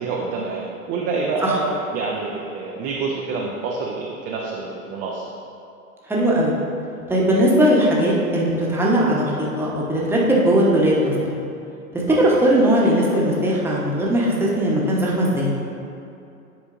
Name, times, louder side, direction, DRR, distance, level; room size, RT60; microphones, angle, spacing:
voice 1, 0.0-5.3 12.1-12.4, right 4 dB, 25° right, -3 dB, 0.5 m, -27 dB
voice 2, 6.1-6.6 7.1-11.4 12.2-15.5, equal, 5° right, -5 dB, 1.0 m, -19 dB
10.0 x 4.3 x 2.6 m, 2.7 s
figure-of-eight pair, 100°, 45 cm